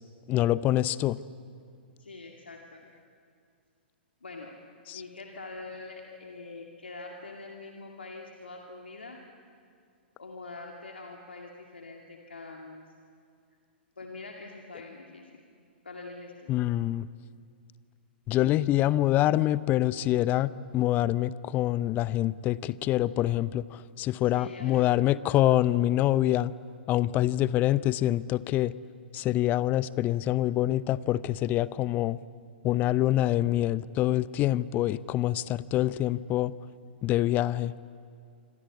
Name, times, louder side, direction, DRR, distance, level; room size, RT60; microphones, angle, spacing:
voice 1, 0.3-1.2 4.9-5.0 16.5-17.1 18.3-26.5 26.9-28.7 29.1-32.2 32.6-36.5 37.0-37.7, left 14 dB, 30° left, 18 dB, 0.7 m, -25 dB
voice 2, 2.0-2.9 4.2-4.6 4.9-9.2 10.2-12.9 14.0-15.4 15.8-16.5 24.2-24.9, left 3 dB, 80° left, 1 dB, 2.4 m, -44 dB
26.5 x 25.5 x 8.4 m, 2.3 s
figure-of-eight pair, 110°, 6 cm